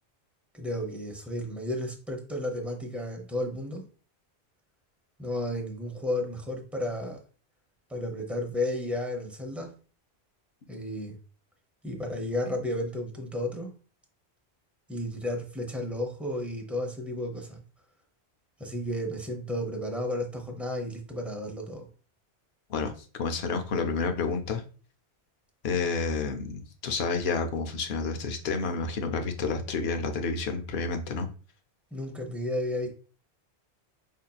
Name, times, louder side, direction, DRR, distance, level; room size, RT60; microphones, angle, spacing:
voice 1, 0.5-3.8 5.2-7.2 7.9-9.7 10.7-11.2 11.8-13.7 14.9-17.6 18.6-21.9 31.9-32.9, left 1 dB, ahead, 0.5 m, -33 dB
voice 2, 23.2-24.6 25.6-31.3, left 4 dB, 70° left, 0.8 m, -30 dB
5.4 x 2.7 x 2.2 m
omnidirectional pair, 1.1 m